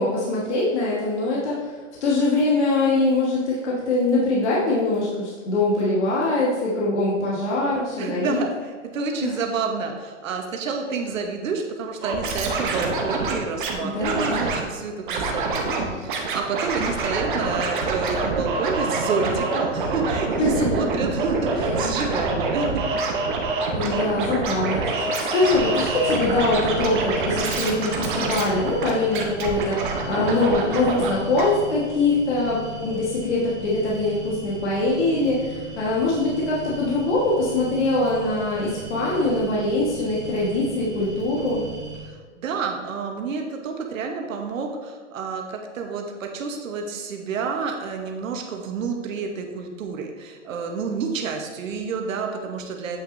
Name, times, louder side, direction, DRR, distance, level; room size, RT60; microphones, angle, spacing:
voice 1, 0.0-8.4 9.2-9.4 13.8-14.4 20.4-20.7 21.5-21.7 23.7-24.8 25.3-41.6, left 2 dB, 60° left, -5 dB, 1.4 m, -23 dB
voice 2, 8.0-22.9 42.1-53.0, right 5 dB, 90° right, 3 dB, 1.1 m, -29 dB
Scratching (performance technique), 12.0-13.7 14.0-14.6 15.1-15.8 16.1-31.1 31.4-31.5, right 3 dB, 40° right, 0.9 m, -26 dB
sound 1, 25.5-42.0, right 4 dB, 10° right, 0.7 m, -38 dB
8.2 x 5.9 x 2.6 m, 1.5 s
hypercardioid pair, 180°, 38 cm